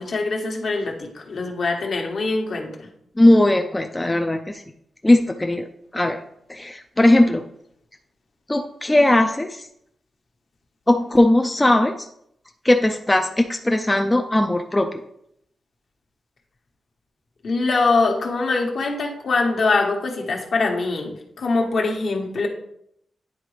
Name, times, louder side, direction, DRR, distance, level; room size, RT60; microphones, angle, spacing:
voice 1, 0.0-2.9 17.4-22.5, left 3 dB, 60° left, 2 dB, 1.1 m, -23 dB
voice 2, 3.2-4.6 5.0-5.7 5.9-6.2 6.5-7.4 8.5-9.7 10.9-12.1 12.6-15.0, left 1 dB, 15° left, 5 dB, 0.3 m, -18 dB
9.8 x 3.9 x 3.2 m, 0.73 s
wide cardioid pair, 150°, 0 cm